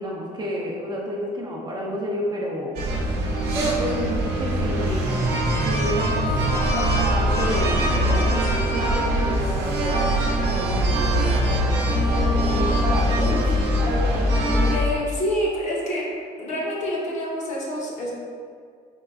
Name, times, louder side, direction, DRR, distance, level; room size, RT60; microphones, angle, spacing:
voice 1, 0.0-2.8 3.5-5.2 5.6-6.3 6.7-13.6, equal, 25° right, -3 dB, 0.6 m, -30 dB
sound 1, 2.8-14.8, equal, 80° right, 0.7 m, -22 dB
voice 2, 14.7-16.1 16.4-18.1, equal, 45° left, -4 dB, 0.9 m, -27 dB
4.5 x 3.0 x 2.4 m, 2.1 s
cardioid pair, 110°, 17 cm